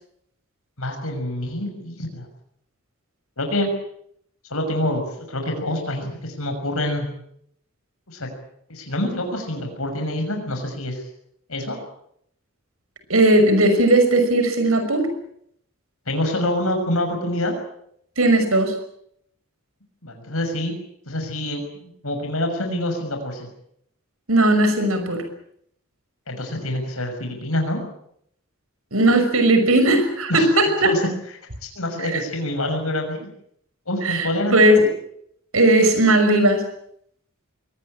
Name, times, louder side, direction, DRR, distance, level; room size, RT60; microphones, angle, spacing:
voice 1, 0.8-2.3 3.4-3.7 4.5-7.1 8.1-8.3 8.7-11.0 11.5-11.8 16.1-17.5 20.0-20.7 21.1-23.5 26.3-27.8 30.3-30.5 30.8-31.1 31.6-33.3 33.9-34.7, left 1 dB, 80° left, 4 dB, 6.3 m, -26 dB
voice 2, 13.1-15.1 18.2-18.7 24.3-25.2 28.9-30.9 34.0-34.9 35.5-36.7, right 1 dB, 75° right, 8 dB, 5.8 m, -17 dB
24.0 x 19.0 x 8.8 m, 0.71 s
head